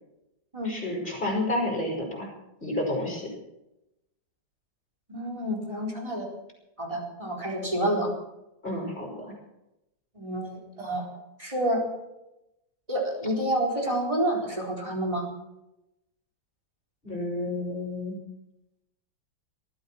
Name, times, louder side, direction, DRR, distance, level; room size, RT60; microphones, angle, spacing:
voice 1, 0.6-2.3 2.6-3.3 8.6-9.3 17.0-18.2, left 1 dB, 25° left, -1 dB, 6.2 m, -30 dB
voice 2, 5.1-6.3 6.8-8.1 10.1-11.1 11.4-11.9 12.9-15.3, right 1 dB, 15° right, 0 dB, 4.2 m, -28 dB
20.0 x 14.0 x 4.5 m, 0.90 s
omnidirectional pair, 2.1 m